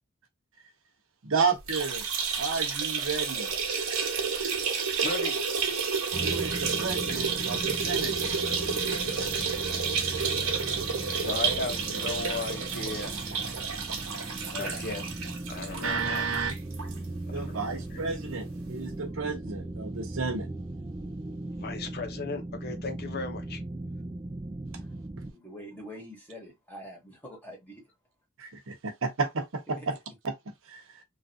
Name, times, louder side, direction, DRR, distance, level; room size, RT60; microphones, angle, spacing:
voice 1, 1.2-2.1 2.4-3.5 6.2-8.1 15.8-16.5 17.3-20.5 28.4-30.0 30.2-30.3 30.7-30.8, right 4 dB, 65° right, 0.8 m, -31 dB
sound 1, 1.6-17.0 17.3-17.4 17.7-17.8 18.8-18.9, right 5 dB, 90° right, 1.0 m, -30 dB
voice 2, 5.0-5.4 11.2-13.1 14.5-15.1 15.5-16.3 17.3-18.0 21.6-23.6, left 3 dB, 50° left, 0.7 m, -36 dB
sound 2, 6.1-25.3, right 2 dB, 15° right, 0.3 m, -38 dB
voice 3, 25.3-27.9 29.7-29.9, equal, 10° left, 1.0 m, -44 dB
3.2 x 2.4 x 2.6 m
head